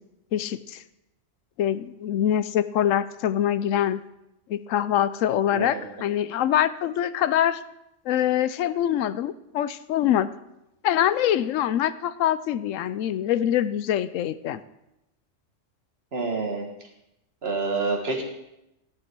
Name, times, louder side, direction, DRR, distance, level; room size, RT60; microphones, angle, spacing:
voice 1, 0.3-0.8 1.6-4.0 4.5-7.6 8.1-10.3 10.8-14.6, left 10 dB, 85° left, 15 dB, 1.0 m, -24 dB
voice 2, 5.5-5.9 16.1-16.7 17.4-18.2, right 3 dB, 55° right, 1 dB, 2.0 m, -27 dB
15.0 x 9.7 x 4.6 m, 0.89 s
omnidirectional pair, 1.3 m